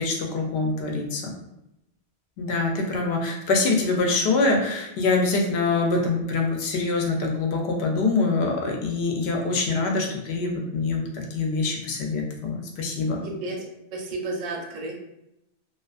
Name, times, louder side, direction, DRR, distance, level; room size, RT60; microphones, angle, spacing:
voice 1, 0.0-1.3 2.4-13.2, left 3 dB, 75° left, 2 dB, 0.8 m, -24 dB
voice 2, 13.2-13.7 13.9-14.9, right 2 dB, 55° right, -1 dB, 0.6 m, -32 dB
2.4 x 2.3 x 2.3 m, 0.85 s
omnidirectional pair, 1.1 m